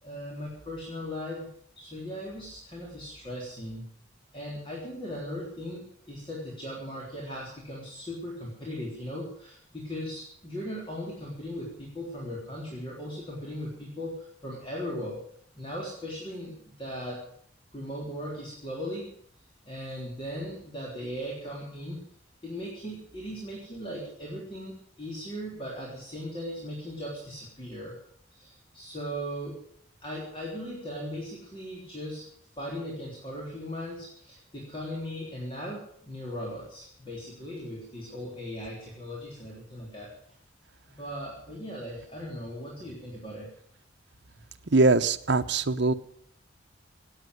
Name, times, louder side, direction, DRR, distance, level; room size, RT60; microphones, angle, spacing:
voice 1, 0.0-1.5 1.8-3.9 4.3-15.2 15.5-17.2 17.7-19.1 19.7-22.0 22.4-27.9 28.3-29.6 30.0-32.2 32.6-40.1 40.9-43.5, equal, 25° left, -4 dB, 3.8 m, -38 dB
voice 2, 44.7-45.9, right 3 dB, 60° right, 7 dB, 0.9 m, -22 dB
18.0 x 8.7 x 8.0 m, 0.63 s
head